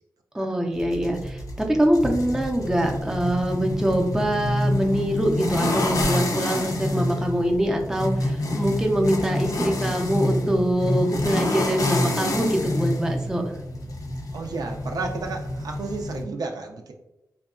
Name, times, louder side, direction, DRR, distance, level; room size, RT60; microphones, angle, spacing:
voice 1, 0.3-13.4, right 1 dB, 10° right, 1 dB, 0.4 m, -24 dB
sound 1, 0.7-16.2, left 1 dB, 65° left, 0.5 m, -27 dB
voice 2, 14.3-16.9, right 3 dB, 75° right, 3 dB, 0.3 m, -32 dB
2.7 x 2.2 x 2.4 m, 0.90 s
cardioid pair, 65°, 7 cm